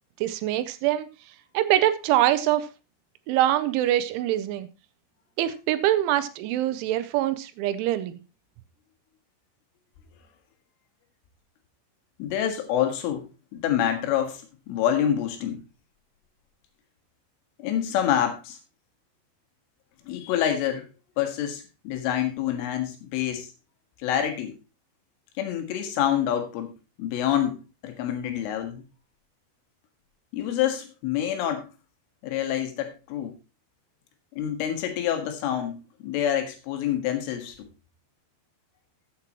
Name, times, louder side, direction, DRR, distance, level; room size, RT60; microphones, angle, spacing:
voice 1, 0.2-1.1 1.5-2.7 3.3-4.7 5.4-8.2, right 13 dB, 85° right, 12 dB, 3.1 m, -24 dB
voice 2, 12.2-13.3 13.5-15.6 17.6-18.6 20.1-20.9 21.2-23.5 24.0-24.5 25.4-26.7 27.0-28.8 30.3-31.7 32.2-33.3 34.4-37.7, left 10 dB, 85° left, 5 dB, 4.1 m, -27 dB
14.0 x 7.6 x 3.0 m, 0.29 s
omnidirectional pair, 5.6 m